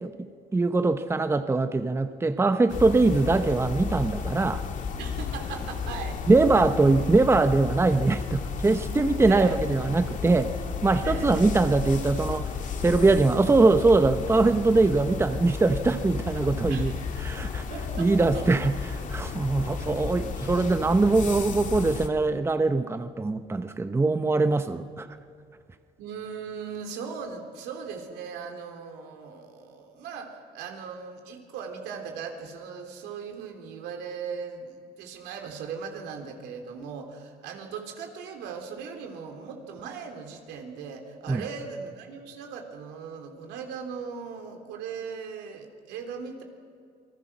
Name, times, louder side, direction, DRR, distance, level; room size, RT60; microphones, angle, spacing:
voice 1, 0.0-4.6 6.3-10.5 10.8-12.5 12.8-16.9 17.2-17.6 18.0-25.1 41.3-41.4, right 3 dB, 15° right, 10 dB, 0.9 m, -22 dB
sound 1, 2.7-22.1, left 6 dB, 50° left, 2.2 m, -33 dB
voice 2, 5.0-6.2 9.3-9.6 11.0-11.5 16.7-17.1 17.7-18.6 26.0-46.4, right 6 dB, 90° right, 3 dB, 3.5 m, -38 dB
28.0 x 20.0 x 6.2 m, 2.2 s
cardioid pair, 110°, 17 cm